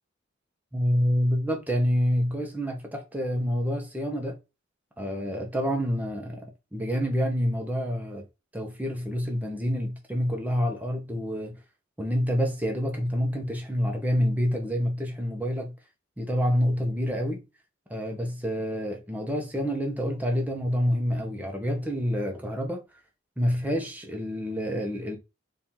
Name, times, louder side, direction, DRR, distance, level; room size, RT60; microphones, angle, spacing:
voice 1, 0.7-4.3 5.0-8.2 8.5-11.6 12.0-15.7 16.2-17.4 17.9-22.8 23.4-25.2, equal, 10° right, 0.9 m, -27 dB
4.4 x 2.6 x 3.6 m
head